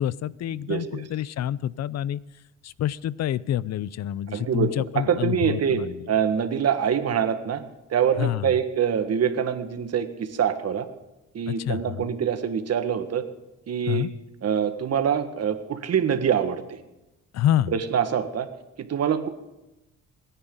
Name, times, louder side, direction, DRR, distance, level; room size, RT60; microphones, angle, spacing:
voice 1, 0.0-2.2 2.6-6.1 8.2-8.5 11.5-12.1 13.9-14.1 17.3-17.7, left 11 dB, 60° left, 20 dB, 0.6 m, -27 dB
voice 2, 0.7-1.0 4.3-5.8 6.1-7.6 7.9-10.9 11.3-13.2 13.7-14.1 14.4-16.8 17.7-18.5 18.9-19.3, right 8 dB, 55° right, 8 dB, 1.6 m, -25 dB
27.5 x 10.0 x 3.9 m, 0.96 s
cardioid pair, 90°, 30 cm